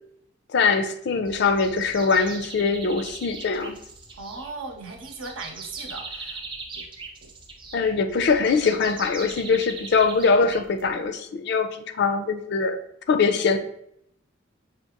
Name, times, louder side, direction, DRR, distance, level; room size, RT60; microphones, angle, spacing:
voice 1, 0.5-3.8 7.7-12.8 13.1-13.6, left 4 dB, 55° left, 8 dB, 0.4 m, -22 dB
sound 1, 1.3-11.1, right 3 dB, 25° right, 0.4 m, -40 dB
voice 2, 4.2-6.4 6.8-6.9 7.2-7.3, right 3 dB, 80° right, 3 dB, 0.8 m, -38 dB
5.6 x 2.4 x 2.9 m, 0.74 s
head